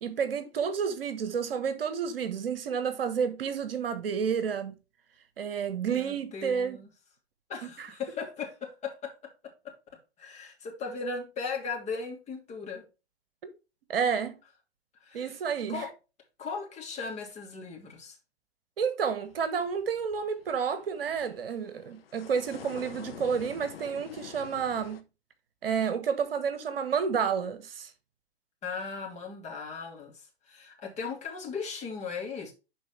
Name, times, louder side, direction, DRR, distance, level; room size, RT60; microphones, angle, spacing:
voice 1, 0.0-4.8 5.4-6.8 7.8-7.9 13.4-13.5 13.9-14.3 15.1-15.9 18.8-25.0 25.6-27.9, right 6 dB, 55° right, 1.3 m, -30 dB
voice 2, 5.9-6.9 7.5-9.3 9.6-9.7 10.2-12.8 15.0-15.4 15.7-15.9 16.4-18.2 28.6-30.1 30.5-32.5, left 5 dB, 20° left, 2.5 m, -37 dB
sound 1, 19.3-25.0, left 9 dB, 60° left, 1.2 m, -48 dB
11.5 x 4.4 x 3.2 m
figure-of-eight pair, 105°, 33 cm